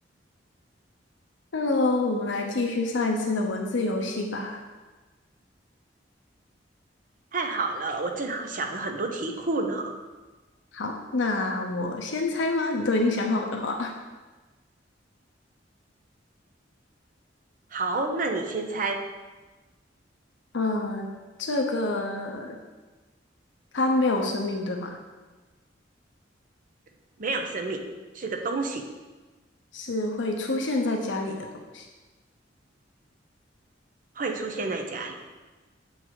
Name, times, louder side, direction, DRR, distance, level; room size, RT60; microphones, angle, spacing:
voice 1, 1.5-4.6 10.7-13.9 20.5-21.1 21.4-22.6 23.7-25.0 29.7-31.9, left 2 dB, 80° left, 2 dB, 0.7 m, -27 dB
voice 2, 7.3-9.9 17.7-19.0 27.2-27.8 28.1-28.8 34.2-35.2, right 3 dB, 45° right, 4 dB, 0.7 m, -29 dB
7.8 x 4.0 x 4.7 m, 1.2 s
head